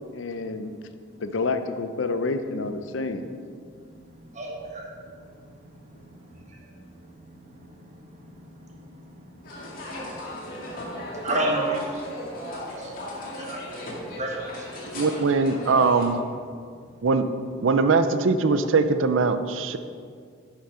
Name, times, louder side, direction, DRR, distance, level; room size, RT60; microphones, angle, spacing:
voice 1, 0.1-0.7 1.2-3.3, left 3 dB, 75° left, 9 dB, 0.6 m, -28 dB
voice 2, 4.3-4.9 6.3-7.1 7.3-12.0 12.8-12.9 13.4-14.7, right 1 dB, 35° right, 0 dB, 1.6 m, -34 dB
sound 1, 9.4-16.0, left 1 dB, 45° left, 2.2 m, -36 dB
voice 3, 14.9-16.2 17.0-17.2 17.6-19.8, right 4 dB, 80° right, 10 dB, 0.5 m, -21 dB
11.5 x 5.9 x 4.9 m, 2.1 s
head